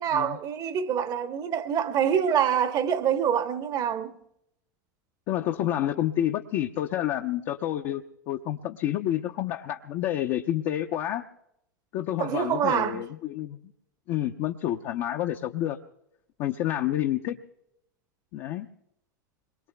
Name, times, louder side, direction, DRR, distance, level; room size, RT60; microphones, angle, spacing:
voice 1, 0.0-4.1 12.2-13.0, right 8 dB, 40° right, 1.0 m, -26 dB
voice 2, 5.3-11.2 11.9-13.7 14.1-15.8 16.4-17.4 18.3-18.7, left 12 dB, 50° left, 0.7 m, -29 dB
28.5 x 22.0 x 2.2 m
hypercardioid pair, 90°, 10 cm